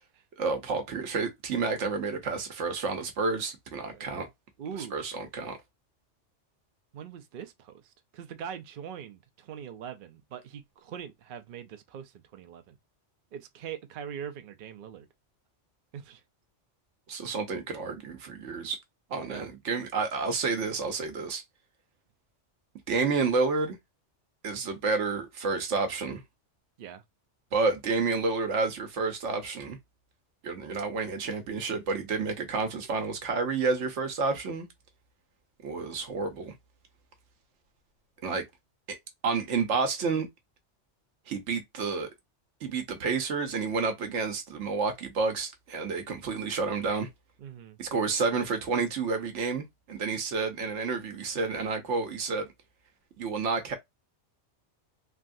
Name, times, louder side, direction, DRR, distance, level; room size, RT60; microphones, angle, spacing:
voice 1, 0.4-4.3 4.9-5.6 17.1-18.8 19.1-21.4 22.9-23.8 24.4-26.2 27.5-29.8 30.4-34.7 35.6-36.5 38.2-38.4 39.2-40.3 41.3-42.1 42.6-47.1 47.8-52.5 53.2-53.8, right 4 dB, 80° right, 1.1 m, -30 dB
voice 2, 3.8-4.3 4.6-5.0 6.9-12.8 13.3-15.1 15.9-16.2 19.2-19.5 26.8-27.0 47.4-47.8, right 8 dB, 60° right, 0.6 m, -42 dB
3.4 x 2.4 x 2.6 m
omnidirectional pair, 1.2 m